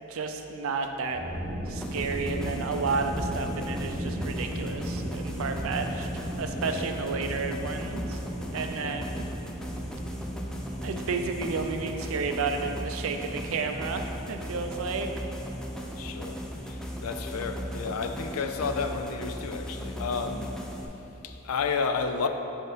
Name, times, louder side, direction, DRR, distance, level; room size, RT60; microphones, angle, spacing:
voice 1, 0.0-1.2 1.7-6.1 6.4-8.2 8.5-9.3 10.8-15.1, right 4 dB, 70° right, 6 dB, 0.5 m, -32 dB
sound 1, 1.0-19.8, equal, 15° right, 0.9 m, -38 dB
sound 2, 1.7-20.9, equal, 5° left, 0.4 m, -37 dB
voice 2, 6.5-7.1 8.7-9.0 16.0-20.6 21.2-22.3, left 5 dB, 90° left, 7 dB, 0.4 m, -32 dB
5.2 x 4.4 x 5.0 m, 3.0 s
head